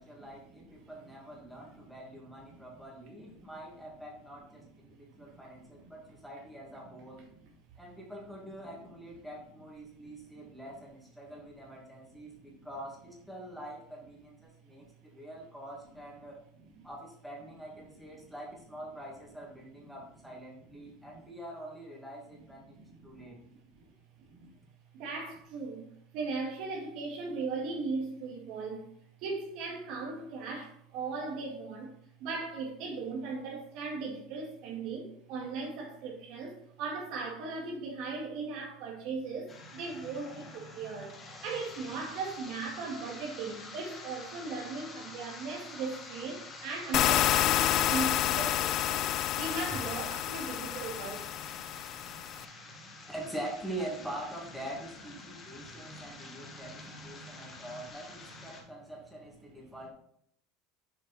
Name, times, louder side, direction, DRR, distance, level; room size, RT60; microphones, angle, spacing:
voice 1, 0.0-7.3 7.8-16.4 16.8-22.8 23.0-23.4 53.1-59.9, right 1 dB, ahead, 2.1 m, -44 dB
voice 2, 9.8-10.5 14.8-14.9 16.8-16.9 18.2-18.3 21.2-21.3 22.7-23.6 24.3-24.5 24.9-25.9 26.1-28.8 29.2-31.9 32.2-49.1 49.4-51.3 55.6-55.7 56.0-56.1, right 4 dB, 60° right, 2.0 m, -38 dB
sound 1, 39.5-58.6, left 3 dB, 25° left, 1.5 m, -48 dB
sound 2, 46.9-52.4, left 12 dB, 45° left, 0.3 m, -29 dB
7.2 x 5.1 x 4.1 m
supercardioid pair, 135°, 0 cm